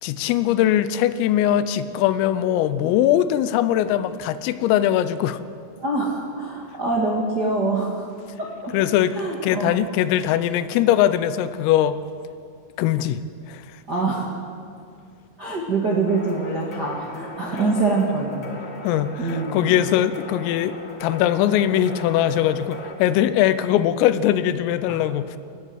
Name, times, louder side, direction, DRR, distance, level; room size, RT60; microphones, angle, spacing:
voice 1, 0.0-5.4 8.7-9.2 9.4-12.0 12.8-13.2 13.5-13.6 18.8-25.4, left 11 dB, 85° left, 13 dB, 3.5 m, -21 dB
voice 2, 5.8-8.1 8.4-8.7 9.1-9.8 13.9-14.4 15.4-18.5 19.2-19.8 24.9-25.1, right 3 dB, 50° right, -3 dB, 1.2 m, -25 dB
sound 1, 16.1-22.9, left 2 dB, 50° left, 1.2 m, -38 dB
28.5 x 13.5 x 8.0 m, 2.3 s
omnidirectional pair, 5.8 m